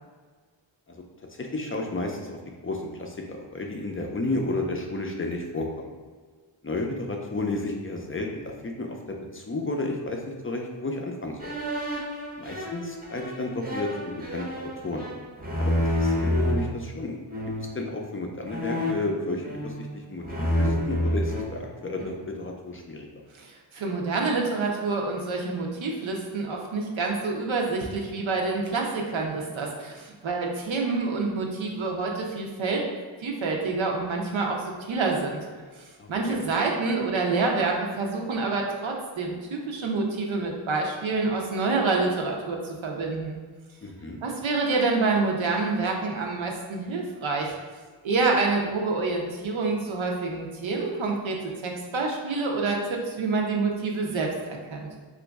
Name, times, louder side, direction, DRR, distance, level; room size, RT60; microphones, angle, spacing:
voice 1, 0.9-5.9 6.6-11.6 12.4-15.1 15.6-17.2 17.6-23.1 36.0-36.4 43.8-44.2, left 2 dB, 30° left, 1 dB, 0.4 m, -32 dB
sound 1, 11.4-16.7 17.3-17.8 18.5-19.9 20.2-22.2, left 1 dB, 20° right, 0.6 m, -29 dB
voice 2, 23.3-32.8 33.2-35.5 35.8-43.4 44.2-47.5 48.0-51.4 51.6-54.9, right 3 dB, 85° right, 0 dB, 0.7 m, -27 dB
3.0 x 2.5 x 3.4 m, 1.5 s
wide cardioid pair, 75°, 45 cm